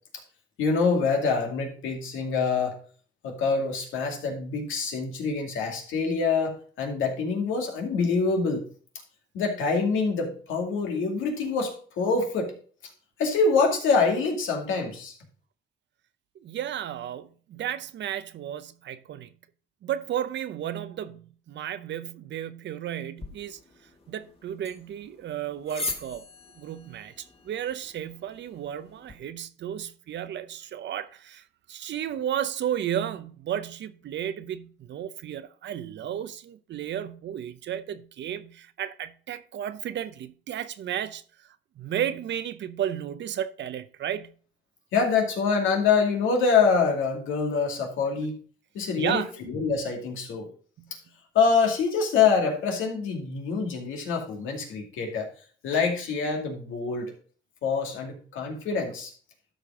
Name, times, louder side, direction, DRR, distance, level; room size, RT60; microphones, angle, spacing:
voice 1, 0.6-2.8 3.2-8.7 9.3-12.5 13.2-15.2 44.9-48.4 48.7-50.5 51.3-55.3 55.6-57.1 57.6-59.1, left 5 dB, 85° left, 2.4 m, -25 dB
voice 2, 16.4-19.3 19.8-23.6 24.1-26.2 26.6-44.3 49.0-49.3 50.8-50.9, right 10 dB, 65° right, 0.7 m, -33 dB
sound 1, 23.2-29.2, left 3 dB, 30° left, 1.8 m, -41 dB
12.5 x 5.2 x 3.7 m
cardioid pair, 90°, 20 cm